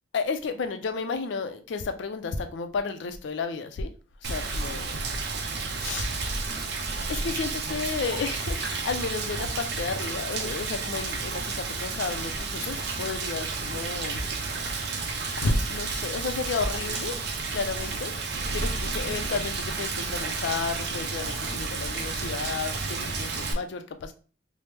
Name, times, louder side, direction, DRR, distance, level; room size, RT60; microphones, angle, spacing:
voice 1, 0.1-3.9 4.2-5.0 5.8-6.1 7.1-14.2 15.4-17.1 17.5-18.1 18.5-24.1, left 4 dB, 65° left, 8 dB, 0.4 m, -32 dB
Rain, 4.2-23.5, right 3 dB, 55° right, 0.4 m, -31 dB
3.0 x 2.0 x 3.3 m, 0.39 s
head